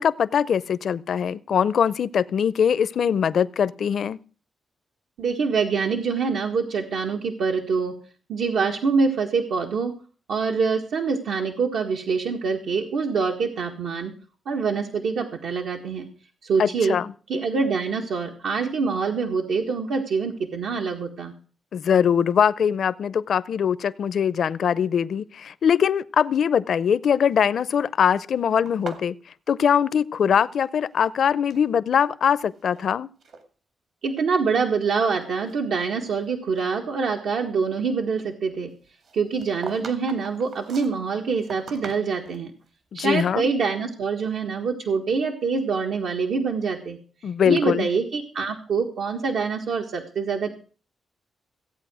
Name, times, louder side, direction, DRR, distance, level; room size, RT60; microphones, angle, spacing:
voice 1, 0.0-4.2 16.6-17.1 21.7-29.1 29.5-33.1 42.9-43.5 47.2-47.9, left 8 dB, 60° left, 18 dB, 0.6 m, -22 dB
voice 2, 5.2-7.9 8.3-9.9 10.3-14.1 14.4-16.1 16.4-17.0 17.3-21.3 34.0-38.7 39.1-42.5 42.9-47.0 47.5-50.5, right 5 dB, 85° right, 2 dB, 1.7 m, -25 dB
sound 1, 28.7-30.7 30.9-31.7 32.3-32.9 33.2-33.4 34.1-34.2 34.7-36.3 36.6-36.7 39.0-42.4, right 5 dB, 65° right, 2.3 m, -42 dB
15.5 x 8.5 x 6.2 m, 0.40 s
cardioid pair, 120°, 0 cm